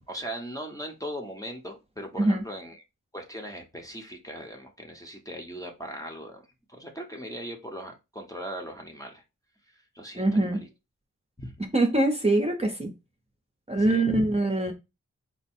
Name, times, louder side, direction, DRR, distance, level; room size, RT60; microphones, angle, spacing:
voice 1, 0.1-2.8 3.1-6.4 6.7-9.2 9.9-10.7 11.4-11.6 13.8-14.3, equal, 10° left, 0.9 m, -38 dB
voice 2, 10.2-10.6 11.7-12.9 13.7-14.7, right 2 dB, 20° right, 0.9 m, -23 dB
4.6 x 2.1 x 4.3 m
wide cardioid pair, 100°, 32 cm